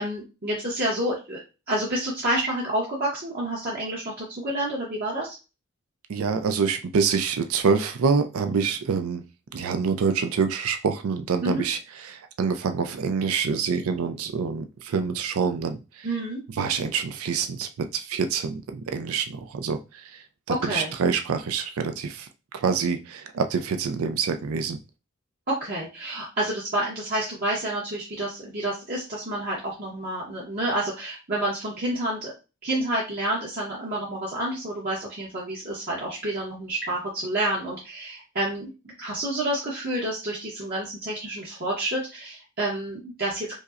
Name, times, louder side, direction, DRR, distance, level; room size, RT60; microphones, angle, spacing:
voice 1, 0.0-1.4 1.7-5.3 11.4-11.7 16.0-16.4 20.5-20.9 25.5-32.3 32.6-38.7 39.0-43.6, right 1 dB, 45° right, -6 dB, 0.9 m, -29 dB
voice 2, 6.1-9.2 9.5-11.8 12.0-16.1 16.6-19.8 20.7-22.3 22.5-24.8, right 5 dB, 80° right, 7 dB, 0.4 m, -26 dB
5.1 x 2.0 x 2.4 m, 0.30 s
head